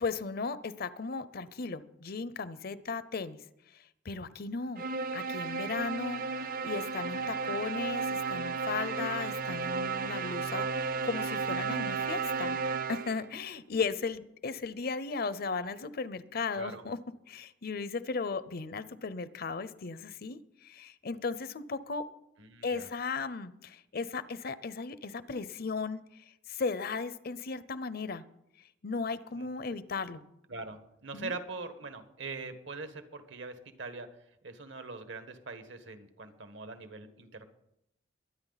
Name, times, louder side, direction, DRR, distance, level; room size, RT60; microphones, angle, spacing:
voice 1, 0.0-3.4 4.0-4.8 5.1-6.2 6.6-12.6 12.9-17.0 17.3-22.0 22.6-26.0 26.5-28.2 28.8-30.2 31.1-31.3, left 4 dB, 50° left, 15 dB, 0.7 m, -36 dB
sound 1, 4.8-13.3, right 4 dB, 50° right, 0.7 m, -33 dB
voice 2, 22.4-22.9 29.3-29.5 30.5-34.1 34.4-37.5, right 3 dB, 75° right, 9 dB, 1.4 m, -42 dB
22.5 x 9.5 x 4.1 m, 0.81 s
head